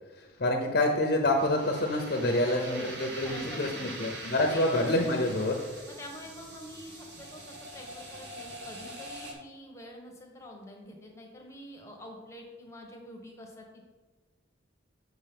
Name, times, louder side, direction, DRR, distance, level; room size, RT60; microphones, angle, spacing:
voice 1, 0.2-5.6, left 1 dB, 50° left, 2 dB, 0.7 m, -27 dB
sound 1, 1.4-9.3, right 1 dB, 60° right, 1.4 m, -43 dB
voice 2, 2.4-4.0 4.5-4.7 5.9-13.8, left 1 dB, 15° left, 0 dB, 1.0 m, -46 dB
7.3 x 6.1 x 3.5 m, 1.3 s
head